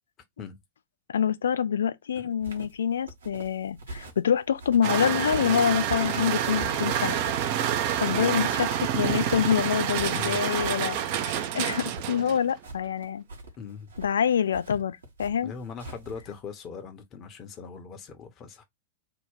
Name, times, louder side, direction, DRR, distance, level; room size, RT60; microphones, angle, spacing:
voice 1, 1.1-7.2 8.0-11.0 11.2-13.2 14.0-15.5, left 8 dB, 65° left, 0.3 m, -26 dB
sound 1, 2.3-16.4, right 1 dB, 70° right, 1.0 m, -44 dB
sound 2, 4.8-12.5, right 10 dB, 45° right, 0.5 m, -28 dB
voice 2, 10.1-10.8 12.2-12.4 13.6-13.9 15.4-18.6, left 6 dB, 30° left, 0.9 m, -40 dB
2.9 x 2.2 x 3.6 m
figure-of-eight pair, 90°, 0 cm